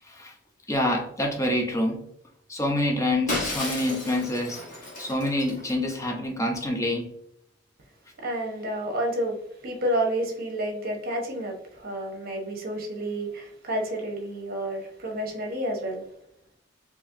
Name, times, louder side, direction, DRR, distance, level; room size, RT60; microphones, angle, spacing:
voice 1, 0.7-2.0 2.5-4.6 5.0-7.1, left 1 dB, 15° left, 0.6 m, -26 dB
Shatter, 3.3-6.0, left 2 dB, 40° left, 1.3 m, -33 dB
voice 2, 8.2-9.4 9.6-16.0, right 1 dB, 50° right, 1.0 m, -30 dB
4.3 x 2.9 x 2.5 m
head